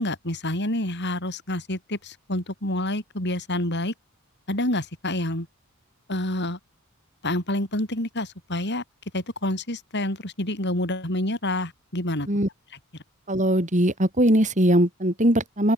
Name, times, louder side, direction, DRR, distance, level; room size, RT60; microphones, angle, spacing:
voice 1, 0.0-3.9 4.5-5.5 6.1-6.6 7.2-8.8 9.1-12.3, left 1 dB, 50° left, 7.0 m, -28 dB
voice 2, 13.3-15.7, right 1 dB, 35° right, 6.1 m, -20 dB
head